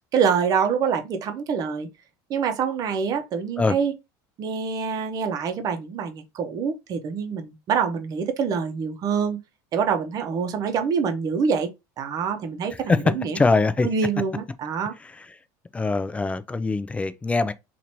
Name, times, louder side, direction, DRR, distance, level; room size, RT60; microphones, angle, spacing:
voice 1, 0.1-1.9 2.3-3.9 4.4-9.4 9.7-11.7 12.0-13.4 13.8-14.9, right 6 dB, 40° right, 0.8 m, -25 dB
voice 2, 13.3-13.9 15.0-15.3 15.7-17.5, left 3 dB, 15° left, 0.4 m, -23 dB
2.9 x 2.6 x 4.4 m
supercardioid pair, 120°, 10 cm